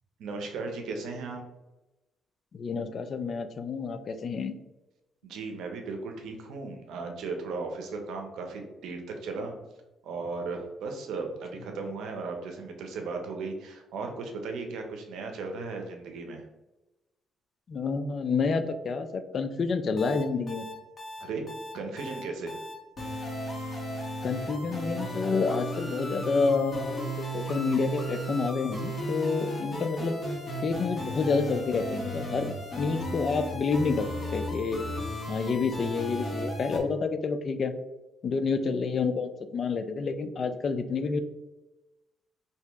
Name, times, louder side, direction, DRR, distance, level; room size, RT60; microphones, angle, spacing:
voice 1, 0.2-1.4 5.2-9.5 10.0-16.4 21.2-21.5 21.7-22.6, right 3 dB, 80° right, 4 dB, 0.7 m, -36 dB
voice 2, 2.5-4.5 17.7-20.6 24.2-30.2 30.6-32.5 32.8-34.8 35.3-37.7 38.2-41.2, left 4 dB, 50° left, 9 dB, 0.3 m, -29 dB
sound 1, 20.0-36.8, equal, 30° left, 1.2 m, -35 dB
2.9 x 2.7 x 3.4 m, 1.0 s
cardioid pair, 90°, 0 cm